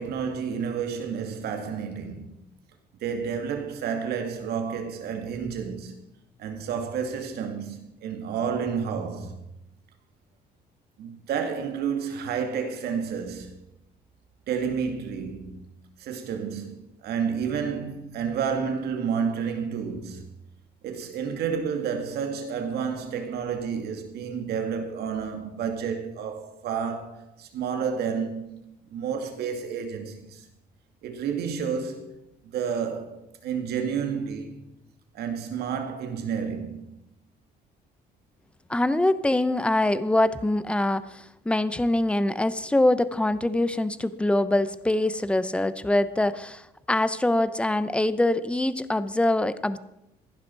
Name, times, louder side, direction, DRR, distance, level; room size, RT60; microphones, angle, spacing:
voice 1, 0.0-2.4 3.0-6.0 6.4-9.4 11.0-13.5 14.5-20.2 20.8-28.6 28.9-30.5 31.0-32.1 32.4-34.6 35.1-37.0, right 6 dB, 70° right, 2.4 m, -30 dB
voice 2, 38.7-49.8, left 1 dB, 5° left, 0.7 m, -24 dB
15.5 x 11.5 x 4.7 m
cardioid pair, 110°, 17 cm